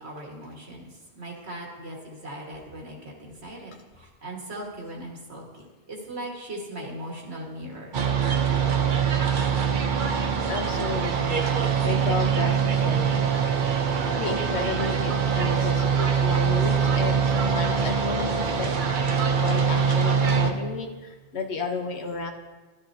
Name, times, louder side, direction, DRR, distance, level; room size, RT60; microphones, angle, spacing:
voice 1, 0.0-8.0, right 1 dB, 85° right, -1 dB, 2.1 m, -39 dB
sound 1, 7.9-20.5, right 6 dB, 55° right, 0.8 m, -23 dB
voice 2, 10.5-13.2 14.2-18.7 19.4-22.3, left 3 dB, 80° left, 3 dB, 1.3 m, -32 dB
12.5 x 12.5 x 2.8 m, 1.3 s
omnidirectional pair, 1.1 m